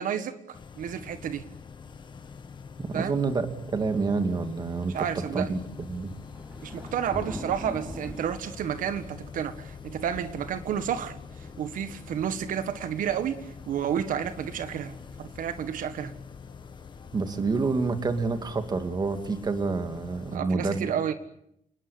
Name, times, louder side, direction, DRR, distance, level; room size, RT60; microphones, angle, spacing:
voice 1, 0.0-1.4 2.9-3.2 4.9-5.6 6.6-16.1 20.3-21.1, right 9 dB, 85° right, 11 dB, 1.6 m, -31 dB
sound 1, 0.5-20.4, left 6 dB, 35° left, 1.7 m, -45 dB
voice 2, 2.8-5.1 5.3-5.6 5.9-6.1 17.1-20.9, right 4 dB, 30° right, 8 dB, 2.4 m, -28 dB
sound 2, 3.7-19.0, equal, 10° right, 6.7 m, -47 dB
29.5 x 20.0 x 8.4 m, 0.76 s
wide cardioid pair, 160°, 13 cm